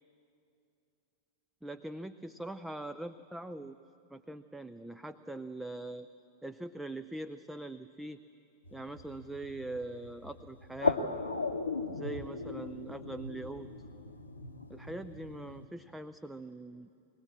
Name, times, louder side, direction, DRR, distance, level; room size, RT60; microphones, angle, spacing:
voice 1, 1.6-3.8 4.1-6.1 6.4-8.2 8.7-11.0 11.9-13.7 14.7-16.9, right 2 dB, 5° right, 10 dB, 0.5 m, -42 dB
sound 1, 8.6-15.7, left 3 dB, 80° left, 0.9 m, -37 dB
22.0 x 17.5 x 7.4 m, 2.6 s
figure-of-eight pair, 90°, 0 cm